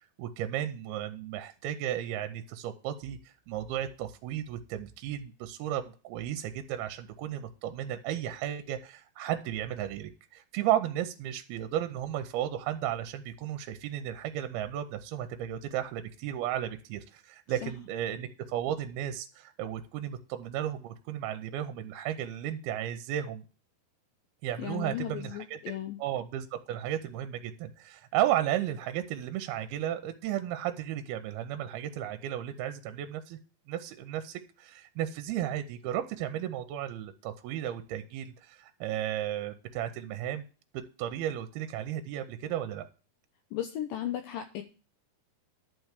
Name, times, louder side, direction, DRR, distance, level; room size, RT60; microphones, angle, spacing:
voice 1, 0.2-23.4 24.4-33.4 33.7-40.4 40.7-42.9, right 11 dB, 80° right, 8 dB, 2.4 m, -34 dB
voice 2, 24.6-26.0 43.5-44.6, left 11 dB, 85° left, 8 dB, 2.0 m, -35 dB
11.0 x 4.7 x 8.0 m, 0.37 s
omnidirectional pair, 4.7 m